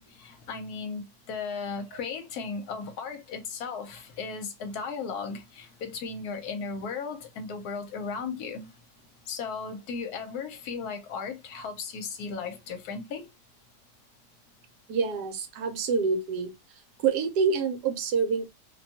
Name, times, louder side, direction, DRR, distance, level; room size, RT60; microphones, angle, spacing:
voice 1, 0.0-8.7 9.3-13.3, left 5 dB, 70° left, 1.1 m, -36 dB
voice 2, 14.9-16.5 17.0-18.5, right 5 dB, 75° right, 1.1 m, -26 dB
2.8 x 2.2 x 2.7 m
omnidirectional pair, 1.9 m